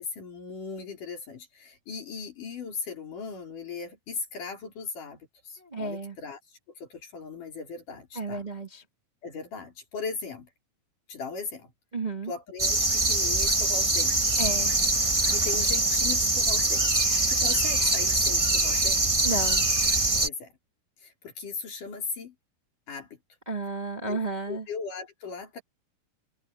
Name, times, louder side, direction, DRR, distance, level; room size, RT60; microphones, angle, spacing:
voice 1, 0.0-8.5 9.2-10.5 11.1-11.7 12.3-14.4 15.3-17.0 17.3-19.1 20.2-20.6 21.0-22.4 22.9-23.2 24.1-24.2 24.5-25.6, left 5 dB, 70° left, 5.9 m, -38 dB
voice 2, 5.6-6.2 8.1-8.8 11.9-12.3 14.4-14.7 19.2-19.7 23.5-24.7, right 2 dB, 20° right, 1.2 m, -32 dB
sound 1, 12.6-20.3, right 2 dB, 40° right, 0.4 m, -24 dB
omnidirectional pair, 3.8 m